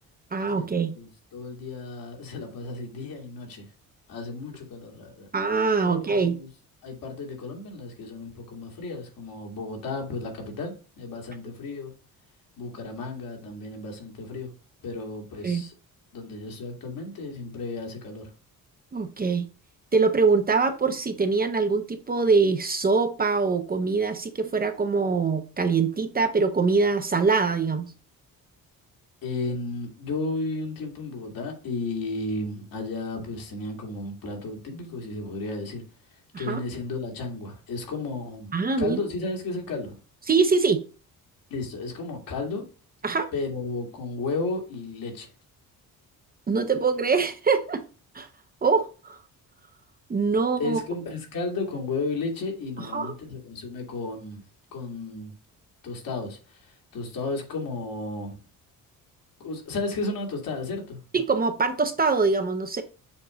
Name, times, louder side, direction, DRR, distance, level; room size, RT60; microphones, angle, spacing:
voice 1, 0.3-0.9 5.3-6.3 15.4-15.6 18.9-19.5 19.9-27.9 36.3-36.6 38.5-39.0 40.3-40.8 43.0-43.3 46.5-47.8 48.1-48.3 48.6-49.2 50.1-50.8 52.9-53.1 61.1-62.8, right 4 dB, 25° right, 0.7 m, -23 dB
voice 2, 0.9-3.7 4.1-5.3 5.8-6.5 6.8-11.9 12.6-14.5 14.8-15.7 16.1-18.3 29.2-35.8 36.1-40.0 41.5-42.6 43.3-45.3 50.4-54.4 54.7-55.3 55.8-58.4 59.4-61.0, left 3 dB, 70° left, 2.3 m, -33 dB
7.0 x 2.7 x 4.9 m
cardioid pair, 110°, 35 cm